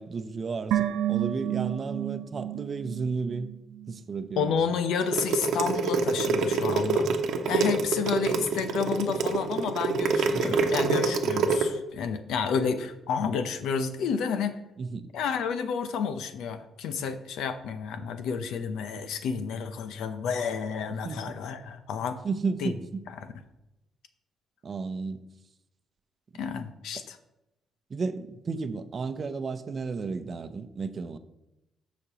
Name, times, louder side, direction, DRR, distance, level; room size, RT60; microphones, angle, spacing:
voice 1, 0.0-3.5 3.9-4.6 10.3-10.6 14.8-15.1 21.0-21.4 22.2-23.0 24.6-25.2 26.9-27.0 27.9-31.2, right 4 dB, 40° right, 10 dB, 0.7 m, -33 dB
sound 1, 0.7-4.0 4.3-4.4, right 12 dB, 90° right, 0.5 m, -31 dB
voice 2, 4.4-7.1 7.5-14.6 15.1-22.2 22.6-22.7 23.2-23.3 26.4-27.2, left 6 dB, 85° left, 10 dB, 0.7 m, -30 dB
sound 2, 5.0-11.6, right 4 dB, 75° right, 0.9 m, -26 dB
15.0 x 5.2 x 3.0 m, 0.92 s
cardioid pair, 90°, 0 cm